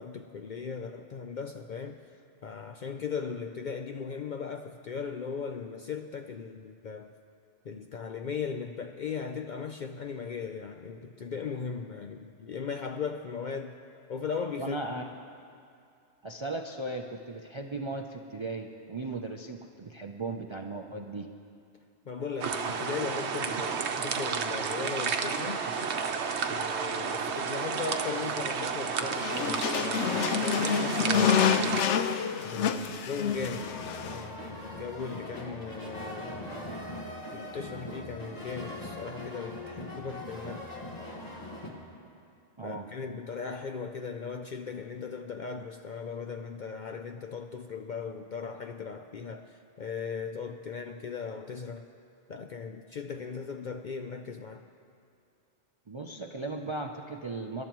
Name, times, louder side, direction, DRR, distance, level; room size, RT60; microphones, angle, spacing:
voice 1, 0.0-2.1 2.4-7.1 7.6-13.8 14.1-15.1 22.1-25.7 26.5-31.8 32.4-33.8 34.1-36.5 37.3-40.7 42.6-51.9 52.3-54.6, left 6 dB, 60° left, 5 dB, 0.5 m, -38 dB
voice 2, 14.6-15.0 16.2-21.3 42.2-42.3 42.6-42.9 55.9-57.6, right 2 dB, 40° right, 3 dB, 0.4 m, -37 dB
sound 1, 22.4-31.8, right 6 dB, 70° right, 1.0 m, -31 dB
sound 2, 29.1-34.2, left 7 dB, 80° left, 1.0 m, -28 dB
sound 3, 33.2-41.7, left 1 dB, 35° left, 1.7 m, -41 dB
25.0 x 12.0 x 3.0 m, 2.5 s
omnidirectional pair, 1.2 m